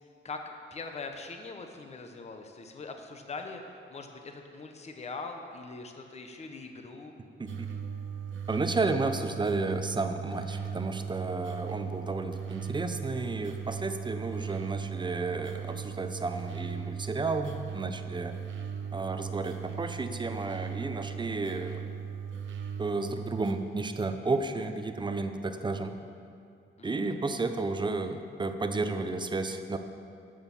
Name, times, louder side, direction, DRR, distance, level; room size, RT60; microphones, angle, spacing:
voice 1, 0.2-7.1 26.8-27.2, left 3 dB, 35° left, 4 dB, 1.0 m, -42 dB
sound 1, 7.5-23.5, right 7 dB, 75° right, 0.9 m, -38 dB
voice 2, 8.5-18.3 18.9-21.8 22.8-25.9 26.8-29.8, right 3 dB, 25° right, 7 dB, 0.6 m, -32 dB
12.5 x 6.4 x 7.2 m, 2.5 s
wide cardioid pair, 130°, 20 cm